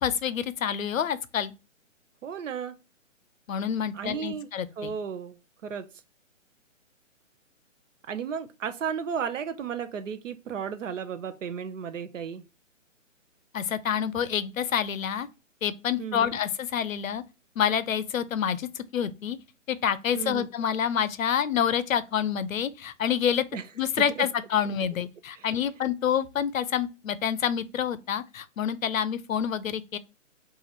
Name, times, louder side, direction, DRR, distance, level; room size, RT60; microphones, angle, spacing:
voice 1, 0.0-1.5 3.5-4.9 13.5-15.3 15.6-17.2 17.6-19.4 19.7-23.4 23.8-30.0, left 8 dB, 90° left, 0.6 m, -27 dB
voice 2, 2.2-2.7 3.9-4.5 4.8-5.4 5.6-5.9 8.1-12.4 16.0-16.4 20.1-20.5 23.5-23.6 24.1-24.3 25.3-25.5, right 7 dB, 70° right, 0.6 m, -34 dB
2.9 x 2.5 x 4.0 m
hypercardioid pair, 150°, 39 cm